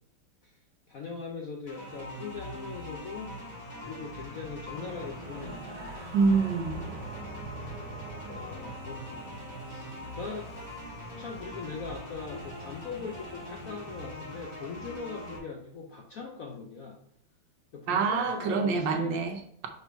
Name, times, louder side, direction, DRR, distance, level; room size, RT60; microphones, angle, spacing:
voice 1, 0.9-3.4 3.8-6.0 8.3-10.5 11.2-17.0 17.7-19.2, left 5 dB, 65° left, 0 dB, 0.9 m, -41 dB
sound 1, 1.7-15.4, left 1 dB, 25° left, 1.5 m, -43 dB
sound 2, 4.7-14.4, right 3 dB, 20° right, 1.8 m, -45 dB
voice 2, 6.1-6.8 17.9-19.7, right 4 dB, 70° right, 4 dB, 1.4 m, -26 dB
5.4 x 4.4 x 4.5 m, 0.70 s
omnidirectional pair, 2.2 m